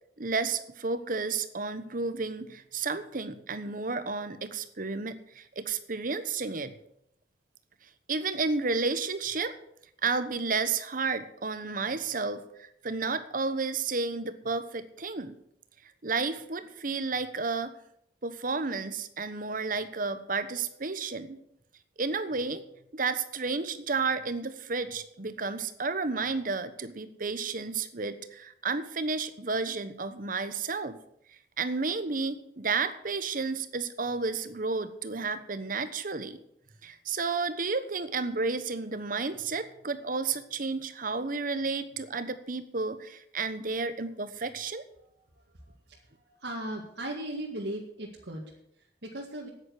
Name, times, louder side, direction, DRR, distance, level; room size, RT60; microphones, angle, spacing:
voice 1, 0.2-6.7 8.1-9.5 10.0-15.4 16.0-17.7 18.2-21.4 22.0-22.6 22.9-31.0 31.6-36.4 36.8-44.8, right 4 dB, 50° right, 12 dB, 1.1 m, -32 dB
voice 2, 45.3-49.5, right 1 dB, 70° right, -2 dB, 2.1 m, -38 dB
9.7 x 9.6 x 9.6 m, 0.75 s
head